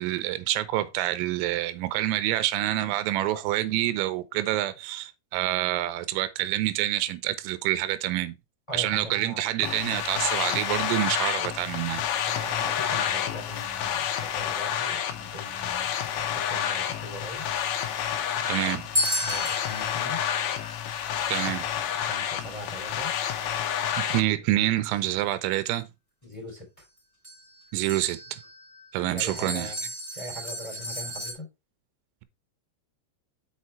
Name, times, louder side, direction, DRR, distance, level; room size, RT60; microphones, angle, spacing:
voice 1, 0.0-8.4 8.7-12.0 18.4-18.9 21.3-21.7 24.0-25.9 27.7-28.4 28.9-29.7, right 15 dB, 90° right, 3.3 m, -27 dB
voice 2, 8.7-9.5 12.2-17.4 19.2-20.2 22.0-23.1 26.2-26.8 28.9-31.5, left 1 dB, 10° left, 2.2 m, -41 dB
sound 1, 9.6-24.2, left 9 dB, 75° left, 2.7 m, -29 dB
sound 2, 18.9-22.8 26.8-26.9 27.2-31.3, left 1 dB, 10° right, 3.1 m, -34 dB
6.6 x 5.7 x 4.2 m
omnidirectional pair, 6.0 m